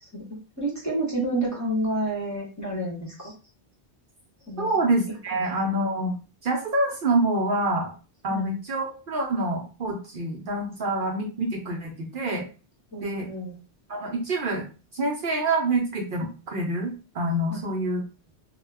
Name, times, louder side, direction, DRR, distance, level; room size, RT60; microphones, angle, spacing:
voice 1, 0.0-3.3 4.5-4.7 8.3-8.5 12.9-13.5 17.5-17.6, right 1 dB, 20° left, -5 dB, 0.7 m, -30 dB
voice 2, 4.6-6.1 6.4-7.9 8.2-12.4 13.0-13.3 13.9-14.7 14.9-18.0, right 2 dB, 60° right, 0 dB, 0.7 m, -26 dB
2.3 x 2.1 x 3.3 m, 0.34 s
omnidirectional pair, 1.1 m